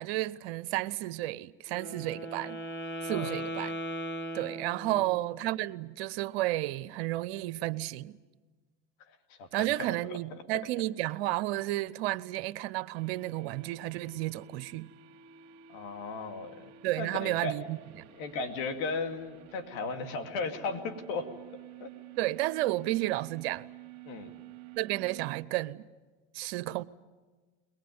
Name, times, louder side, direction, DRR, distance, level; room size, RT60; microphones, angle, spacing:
voice 1, 0.0-2.6 3.0-3.8 4.3-8.2 9.5-14.9 16.8-18.1 22.2-23.7 24.8-25.9 26.3-26.8, right 17 dB, 80° right, 0.7 m, -32 dB
Wind instrument woodwind instrument, 1.7-5.3, right 1 dB, 35° left, 2.9 m, -38 dB
voice 2, 3.1-3.4 4.8-5.1 9.4-10.2 15.7-16.7 17.0-17.6 18.2-21.3 21.8-21.9 24.1-24.3, left 4 dB, 75° left, 2.5 m, -36 dB
sound 1, 12.9-25.5, right 11 dB, 60° right, 1.7 m, -51 dB
22.5 x 20.0 x 9.5 m
supercardioid pair, 90°, 32 cm